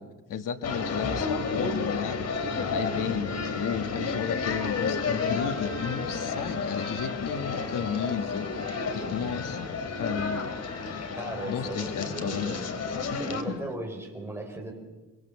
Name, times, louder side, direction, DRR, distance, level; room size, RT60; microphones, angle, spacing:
voice 1, 0.3-9.7 9.9-10.4 11.4-12.5 13.1-13.6, left 7 dB, 70° left, 7 dB, 1.6 m, -33 dB
sound 1, 0.6-13.4, left 4 dB, 50° left, 2.9 m, -31 dB
Bowed string instrument, 2.1-13.1, left 1 dB, 15° left, 3.3 m, -49 dB
voice 2, 2.9-3.2 11.2-12.7 13.2-14.7, right 2 dB, 5° right, 1 dB, 5.0 m, -37 dB
24.5 x 24.5 x 7.1 m, 1.2 s
wide cardioid pair, 160°, 33 cm